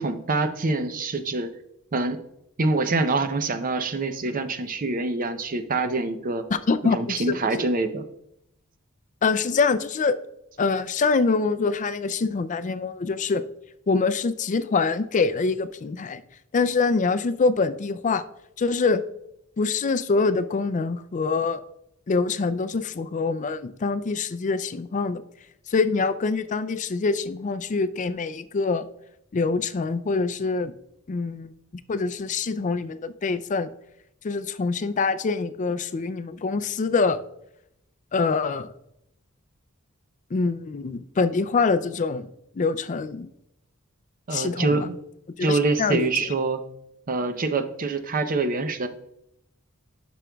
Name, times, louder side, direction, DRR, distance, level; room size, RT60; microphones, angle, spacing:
voice 1, 0.0-1.5 1.9-2.2 2.6-6.5 6.9-8.1 44.3-44.9 45.4-46.6 47.1-48.9, right 3 dB, 40° right, 9 dB, 0.6 m, -25 dB
voice 2, 6.5-7.4 9.2-10.2 10.6-13.4 13.9-16.2 16.5-18.2 18.6-19.0 19.6-21.6 22.1-25.2 25.7-28.9 29.3-30.7 31.1-31.5 31.9-33.7 34.2-37.2 38.1-38.7 40.3-42.3 42.6-43.3 44.3-44.9 45.4-46.1, left 4 dB, 35° left, 12 dB, 0.4 m, -25 dB
11.5 x 6.1 x 2.3 m, 0.79 s
head